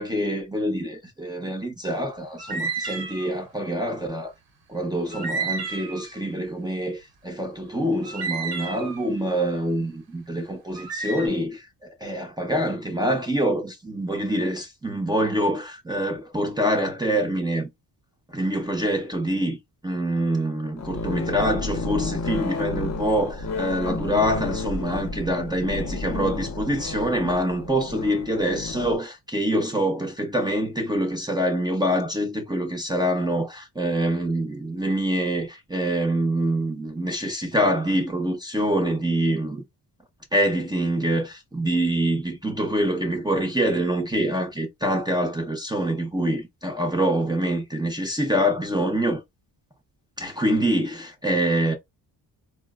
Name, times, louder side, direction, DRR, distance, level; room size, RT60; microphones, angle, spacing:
voice 1, 0.0-4.3 4.7-17.7 18.3-19.6 19.8-39.6 40.3-49.2 50.2-51.7, right 1 dB, 10° right, 0.6 m, -25 dB
sound 1, 2.4-3.3 5.1-6.1 8.0-9.0 10.7-11.3, right 4 dB, 65° right, 0.9 m, -31 dB
sound 2, 20.8-29.0, left 3 dB, 40° left, 0.7 m, -31 dB
4.2 x 2.0 x 2.3 m
cardioid pair, 125°, 41 cm